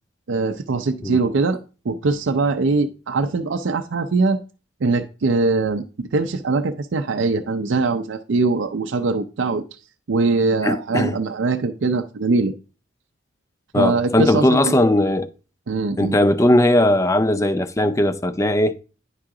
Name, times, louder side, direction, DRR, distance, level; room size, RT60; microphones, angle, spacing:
voice 1, 0.3-1.6 1.8-4.4 4.8-9.6 10.1-12.5 13.7-14.7 15.7-16.2, right 3 dB, 70° right, 0.5 m, -22 dB
voice 2, 10.6-11.1 13.7-15.3 16.0-18.7, left 1 dB, 15° left, 0.4 m, -18 dB
9.7 x 3.7 x 4.8 m
head